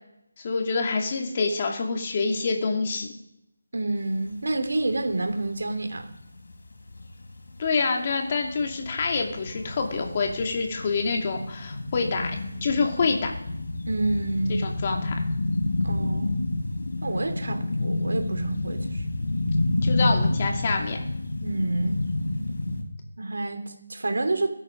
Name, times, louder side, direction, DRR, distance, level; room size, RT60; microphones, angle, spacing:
voice 1, 0.4-3.1 7.6-12.4 12.6-13.3 14.5-15.1 19.8-21.0, left 4 dB, 30° left, 2 dB, 2.4 m, -26 dB
voice 2, 3.7-6.1 13.8-14.7 15.8-16.3 17.0-19.1 21.4-22.0 23.2-24.5, right 2 dB, 70° right, 6 dB, 3.1 m, -28 dB
sound 1, 4.2-4.3 4.6-22.8, left 2 dB, 70° left, 3.7 m, -29 dB
22.5 x 8.7 x 5.2 m, 0.81 s
figure-of-eight pair, 170°, 0 cm